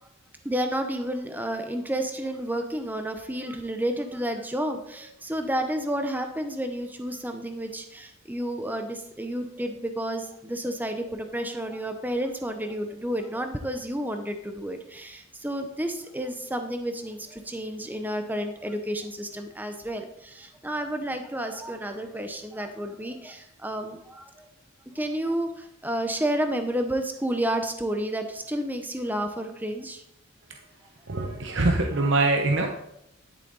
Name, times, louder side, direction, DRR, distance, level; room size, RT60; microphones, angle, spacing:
voice 1, 0.4-24.5 24.9-30.0, right 1 dB, 10° right, 6 dB, 0.7 m, -31 dB
voice 2, 31.1-32.7, right 2 dB, 55° right, 3 dB, 0.8 m, -23 dB
11.5 x 7.3 x 4.0 m, 0.83 s
head